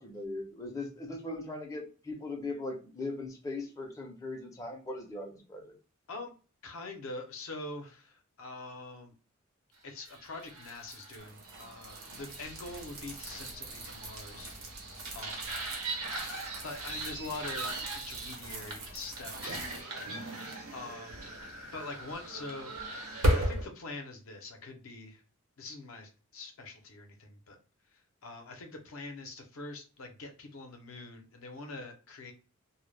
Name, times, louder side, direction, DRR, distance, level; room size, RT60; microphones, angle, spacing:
voice 1, 0.0-5.7, left 2 dB, 15° left, 0 dB, 0.4 m, -39 dB
voice 2, 6.6-9.1 9.8-14.5 15.1-15.4 16.6-20.2 20.7-21.2 21.7-22.7 23.3-25.2 25.6-27.6 27.9-32.3, left 3 dB, 65° left, 4 dB, 0.5 m, -44 dB
sound 1, 10.0-23.7, right 1 dB, 90° right, 0.8 m, -37 dB
sound 2, 11.2-20.9, right 2 dB, 60° right, 0.7 m, -52 dB
2.0 x 2.0 x 3.1 m, 0.35 s
head